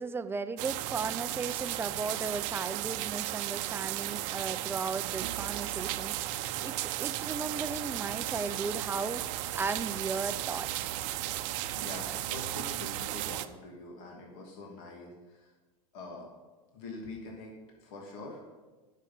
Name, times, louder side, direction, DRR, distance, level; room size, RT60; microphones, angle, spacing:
voice 1, 0.0-10.9, right 4 dB, 10° right, 12 dB, 0.4 m, -36 dB
sound 1, 0.6-13.5, right 15 dB, 60° right, 0.7 m, -35 dB
voice 2, 11.6-15.5 15.9-16.3 16.7-17.5 17.8-18.4, left 2 dB, 65° left, -1 dB, 2.6 m, -44 dB
10.0 x 6.6 x 7.7 m, 1.3 s
supercardioid pair, 125°, 18 cm